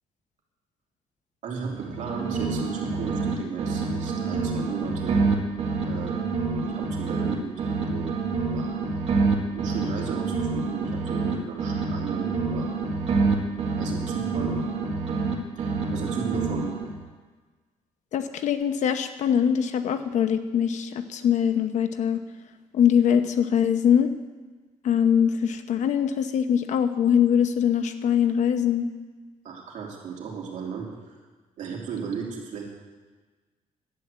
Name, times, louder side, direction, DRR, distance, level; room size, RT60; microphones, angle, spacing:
voice 1, 1.4-5.2 5.8-6.3 6.6-8.1 8.5-8.7 9.5-12.7 13.8-14.6 15.6-16.7 29.4-30.9 31.6-32.6, right 6 dB, 70° right, -1 dB, 3.0 m, -35 dB
sound 1, 1.7-3.3 3.6-7.3 7.6-11.3 11.6-15.3 15.6-17.0, right 4 dB, 50° right, 1.8 m, -27 dB
voice 2, 18.1-22.2 22.7-24.1 24.8-28.9, left 8 dB, 65° left, 9 dB, 0.9 m, -22 dB
11.5 x 8.8 x 8.1 m, 1.3 s
cardioid pair, 160°, 13 cm